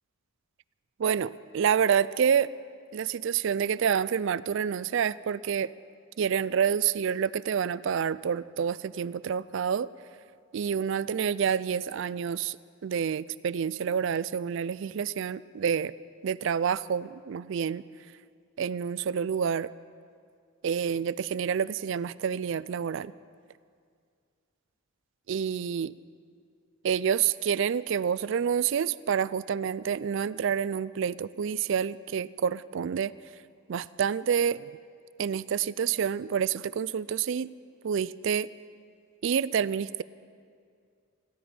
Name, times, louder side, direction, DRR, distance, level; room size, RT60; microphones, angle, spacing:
voice 1, 1.0-2.5 2.9-5.7 6.2-9.9 10.5-12.6 12.8-15.9 16.2-17.8 18.6-19.7 20.6-23.1 25.3-25.9 26.8-33.1 33.7-34.7 35.2-37.5 37.8-38.5 39.2-40.0, right 7 dB, 60° right, 18 dB, 0.3 m, -28 dB
21.0 x 15.0 x 4.4 m, 2.2 s
head